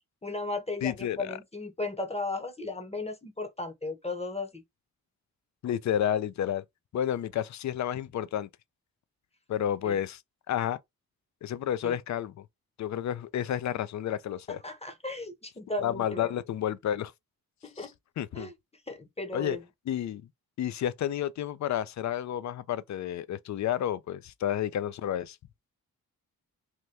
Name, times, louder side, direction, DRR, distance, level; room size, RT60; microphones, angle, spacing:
voice 1, 0.2-4.6 9.8-10.0 11.8-11.9 14.5-16.3 17.6-17.9 18.3-18.5 18.9-19.6, left 2 dB, 15° left, 0.8 m, -35 dB
voice 2, 0.8-1.4 5.6-6.6 6.9-8.5 9.5-10.2 10.5-10.8 11.4-12.4 12.8-14.6 15.8-17.1 17.8-17.9 18.2-18.5 19.3-19.6 19.9-20.2 20.6-25.4, left 10 dB, 50° left, 0.4 m, -30 dB
2.9 x 2.2 x 3.1 m
supercardioid pair, 45°, 38 cm